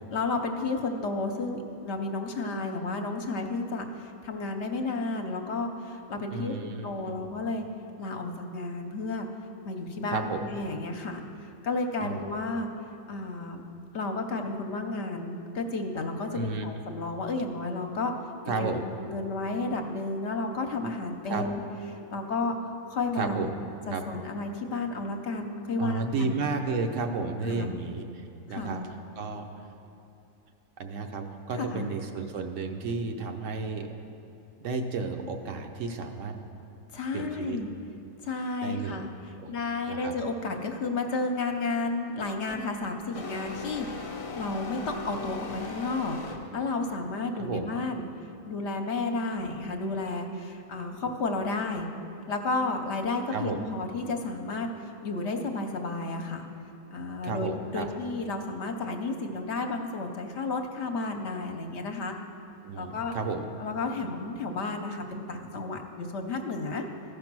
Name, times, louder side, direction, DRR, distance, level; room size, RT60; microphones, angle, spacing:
voice 1, 0.1-7.6 8.0-9.3 9.6-12.7 13.1-13.6 13.9-18.1 18.4-18.8 19.0-21.6 21.9-22.6 22.9-23.5 23.9-26.4 27.4-27.7 28.5-28.9 31.5-31.9 36.9-37.7 38.2-46.2 46.5-48.0 48.5-51.9 52.3-56.5 56.9-62.2 62.7-63.1 63.6-66.9, left 3 dB, 60° left, 4 dB, 0.9 m, -32 dB
voice 2, 6.3-7.2 10.1-10.4 12.0-12.1 16.3-16.7 18.5-18.8 21.2-21.4 23.2-23.5 23.9-24.0 25.8-28.8 29.2-29.4 30.8-33.9 34.6-36.3 37.1-37.6 38.6-39.1 39.4-39.5 39.9-40.1 47.3-47.7 53.3-53.6 57.2-57.9 62.6-63.6, right 4 dB, 70° right, 5 dB, 1.1 m, -32 dB
sound 1, 42.5-42.7 43.1-46.7, left 3 dB, 40° left, 0.4 m, -39 dB
14.5 x 5.3 x 6.0 m, 2.7 s
omnidirectional pair, 1.4 m